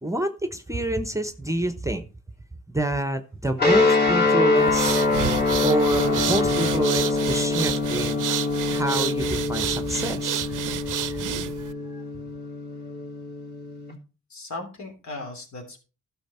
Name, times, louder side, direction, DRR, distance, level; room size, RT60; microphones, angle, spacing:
voice 1, 0.0-2.1 2.7-5.1 5.6-8.2 8.7-12.0, right 1 dB, 10° right, 9 dB, 0.9 m, -28 dB
sound 1, 3.6-13.9, left 3 dB, 30° left, 3.2 m, -24 dB
sound 2, 4.6-11.7, right 11 dB, 75° right, 0.6 m, -30 dB
voice 2, 14.3-15.8, left 2 dB, 60° left, 3 dB, 3.3 m, -37 dB
12.0 x 6.3 x 4.3 m, 0.34 s
cardioid pair, 85°, 32 cm